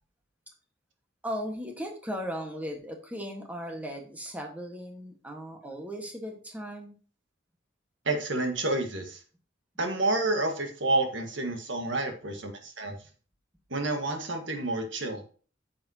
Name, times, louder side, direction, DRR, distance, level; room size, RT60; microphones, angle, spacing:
voice 1, 1.2-7.0, equal, 10° right, 2 dB, 1.6 m, -37 dB
voice 2, 8.1-9.2 9.8-13.0 13.7-15.2, right 2 dB, 65° right, 5 dB, 1.8 m, -29 dB
9.5 x 7.0 x 2.9 m, 0.39 s
head